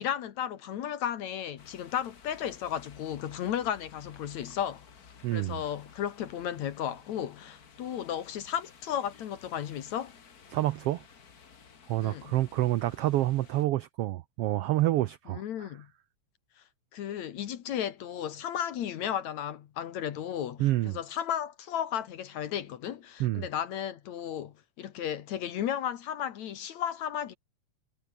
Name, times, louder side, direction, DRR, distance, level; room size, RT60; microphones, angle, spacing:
voice 1, 0.0-4.8 5.3-10.1 12.0-12.3 15.3-15.9 16.9-27.3, left 10 dB, 70° left, 2.6 m, -34 dB
sound 1, 1.6-13.7, left 6 dB, 35° left, 1.7 m, -55 dB
voice 2, 5.2-5.6 10.5-11.0 11.9-15.7 20.6-21.0 23.2-23.5, right 15 dB, 85° right, 1.3 m, -28 dB
omnidirectional pair, 3.5 m